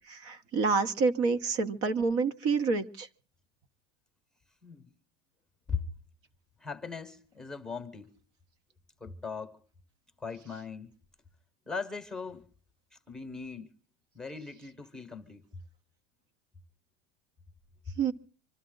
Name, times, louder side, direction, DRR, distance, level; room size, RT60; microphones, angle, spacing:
voice 1, 0.1-3.1 18.0-18.1, right 4 dB, 50° right, 1.2 m, -28 dB
voice 2, 6.6-8.1 9.0-9.6 10.2-10.9 11.7-12.5 12.9-13.7 14.1-15.4, left 5 dB, ahead, 1.2 m, -39 dB
25.5 x 13.0 x 3.9 m
supercardioid pair, 155°, 31 cm